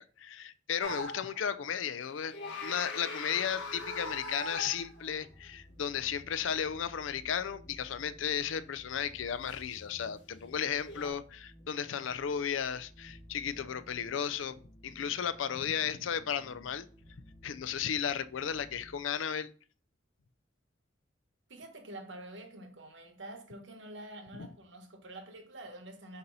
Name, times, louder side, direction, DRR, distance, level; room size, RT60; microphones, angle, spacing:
voice 1, 0.0-2.4 2.6-16.9 17.4-19.5, left 8 dB, 85° left, 0.4 m, -34 dB
sound 1, 0.8-1.5 2.2-5.2 9.4-9.6 10.8-11.1, left 2 dB, 70° left, 1.7 m, -41 dB
sound 2, 3.2-19.0, equal, 35° left, 1.5 m, -56 dB
voice 2, 21.5-26.2, right 1 dB, 70° right, 1.1 m, -47 dB
6.7 x 2.8 x 5.4 m
head